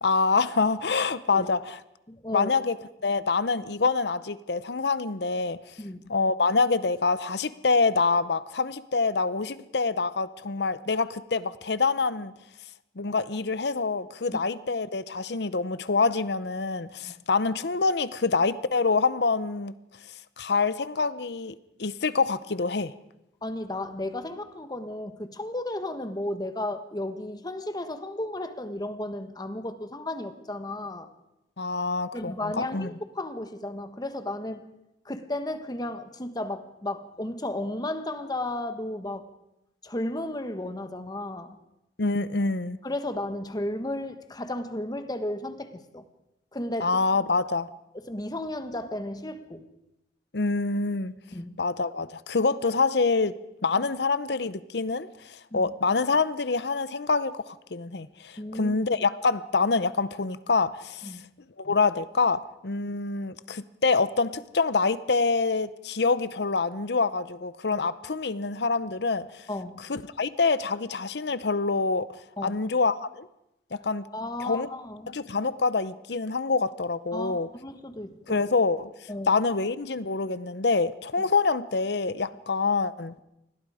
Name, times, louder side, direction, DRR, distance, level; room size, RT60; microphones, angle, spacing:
voice 1, 0.0-1.8 2.3-2.8 3.0-5.6 6.1-12.3 13.0-19.7 20.4-22.9 31.6-32.9 42.0-42.8 46.8-47.7 50.3-51.1 51.6-53.4 53.6-61.2 61.6-69.5 69.9-72.1 72.4-73.3 73.7-74.1 74.4-74.7 75.1-77.5 78.3-78.9 79.3-83.2, left 4 dB, 65° left, 16 dB, 0.8 m, -26 dB
voice 2, 2.1-2.5 5.8-6.0 14.3-14.4 17.0-17.1 23.4-31.1 32.1-34.6 35.0-39.2 39.8-41.6 42.8-46.0 46.5-46.9 48.1-49.7 51.3-51.6 55.5-55.7 58.4-58.8 61.0-61.2 69.5-69.9 72.4-72.6 74.1-75.1 77.1-78.5 79.1-79.3, left 1 dB, 25° left, 9 dB, 1.4 m, -34 dB
28.0 x 21.0 x 5.0 m, 0.89 s
head